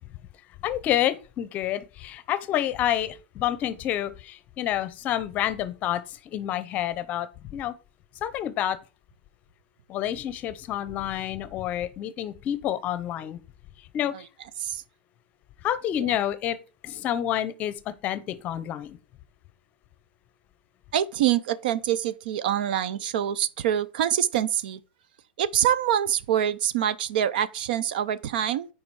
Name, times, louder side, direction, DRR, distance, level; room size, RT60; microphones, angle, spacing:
voice 1, 0.6-7.7 8.2-8.8 9.9-13.4 13.9-14.1 15.6-16.6 16.8-17.7 18.0-19.0, left 11 dB, 25° left, 0.7 m, -28 dB
voice 2, 20.9-24.8 25.4-28.7, right 10 dB, 55° right, 0.6 m, -25 dB
9.5 x 4.8 x 4.7 m
supercardioid pair, 155°, 6 cm